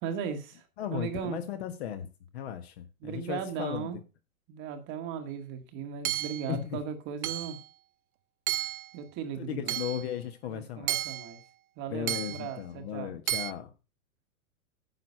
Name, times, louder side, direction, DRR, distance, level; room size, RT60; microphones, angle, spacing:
voice 1, 0.0-1.4 3.0-4.0 4.5-7.6 8.9-9.8 10.5-11.4 11.8-13.1, right 7 dB, 25° right, 1.2 m, -37 dB
voice 2, 0.8-3.9 6.5-6.8 9.4-10.9 11.9-13.7, left 10 dB, 45° left, 1.3 m, -36 dB
Hammer / Chink clink, 6.0-6.5 7.2-7.6 8.5-8.9 9.7-10.0 10.9-11.3 12.1-12.5 13.3-13.5, right 13 dB, 75° right, 0.7 m, -32 dB
9.6 x 6.3 x 5.4 m
hypercardioid pair, 150°, 43 cm